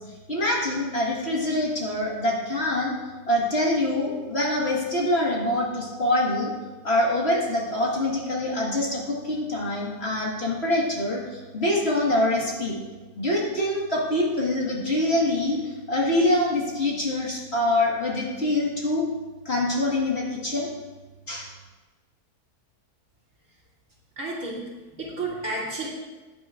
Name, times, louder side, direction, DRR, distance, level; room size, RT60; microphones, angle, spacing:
voice 1, 0.3-2.9 3.3-6.5 6.8-12.8 13.2-19.1 19.5-20.7 21.3-21.5, left 1 dB, 40° left, -4 dB, 2.0 m, -25 dB
voice 2, 24.2-25.9, right 2 dB, 50° right, -6 dB, 3.1 m, -32 dB
15.0 x 9.2 x 2.5 m, 1.3 s
omnidirectional pair, 1.7 m